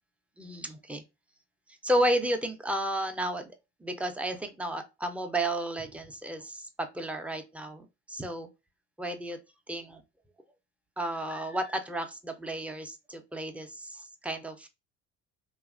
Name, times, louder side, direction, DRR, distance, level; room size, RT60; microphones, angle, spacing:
voice 1, 0.4-1.0 1.8-3.5 3.8-8.5 9.0-9.4 9.7-10.0 11.0-14.7, right 1 dB, 5° right, 6 dB, 0.3 m, -32 dB
2.8 x 2.4 x 2.3 m, 0.26 s
hypercardioid pair, 70°, 37 cm